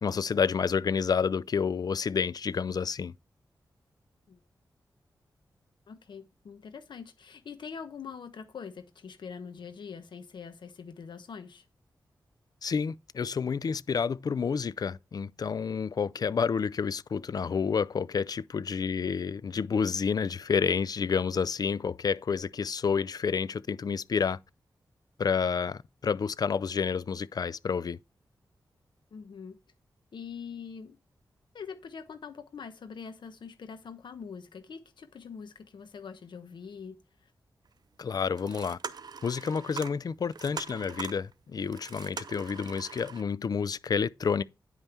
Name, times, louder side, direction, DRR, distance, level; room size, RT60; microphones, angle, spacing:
voice 1, 0.0-3.1 12.6-24.4 25.2-28.0 38.0-38.8 39.2-44.4, left 6 dB, 55° left, 0.4 m, -29 dB
voice 2, 5.9-11.6 29.1-29.6 30.1-31.0 31.5-37.0, left 6 dB, 80° left, 1.1 m, -43 dB
sound 1, 37.7-37.8 38.2-43.2, right 5 dB, 60° right, 0.7 m, -42 dB
9.5 x 5.5 x 4.4 m
cardioid pair, 70°, 8 cm